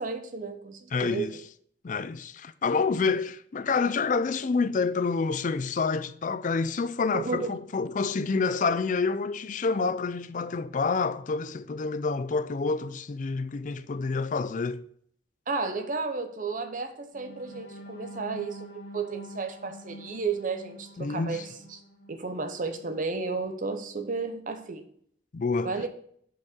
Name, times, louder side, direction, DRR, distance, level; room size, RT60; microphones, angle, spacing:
voice 1, 0.0-1.4 3.0-3.2 7.1-7.5 15.5-21.8 22.1-24.9 25.6-25.9, right 4 dB, 45° right, 0.8 m, -33 dB
voice 2, 0.9-1.3 1.8-14.8 21.0-21.4 25.3-25.7, left 4 dB, 45° left, 0.4 m, -28 dB
sound 1, 17.1-23.1 23.6-23.7 24.1-24.3, equal, 70° left, 1.5 m, -46 dB
5.8 x 5.3 x 6.5 m
head